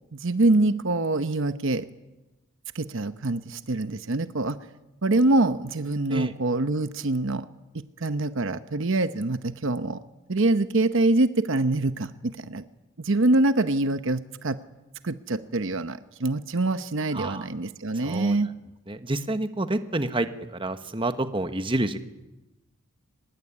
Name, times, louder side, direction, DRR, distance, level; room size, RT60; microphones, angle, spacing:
voice 1, 0.1-1.8 2.7-4.6 5.0-7.5 8.0-10.0 10.3-12.6 13.0-14.6 15.0-18.5, right 2 dB, 60° right, 11 dB, 0.9 m, -25 dB
voice 2, 17.1-17.5 18.0-18.4 18.9-20.3 20.5-22.0, right 2 dB, 25° right, 9 dB, 1.3 m, -28 dB
24.0 x 20.5 x 9.9 m, 1.0 s
head